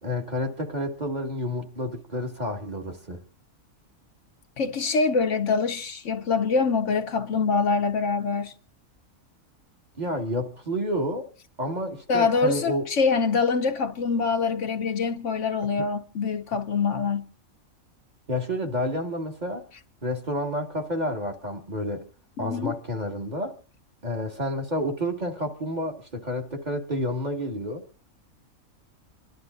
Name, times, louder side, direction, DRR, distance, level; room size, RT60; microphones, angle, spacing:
voice 1, 0.0-3.2 10.0-11.3 11.6-12.9 18.3-19.7 20.0-22.1 22.4-23.6 24.0-27.8, equal, 30° right, 1.9 m, -30 dB
voice 2, 4.6-8.5 12.1-17.3 22.4-22.7, left 5 dB, 65° left, 1.1 m, -24 dB
27.5 x 11.5 x 2.5 m
omnidirectional pair, 1.4 m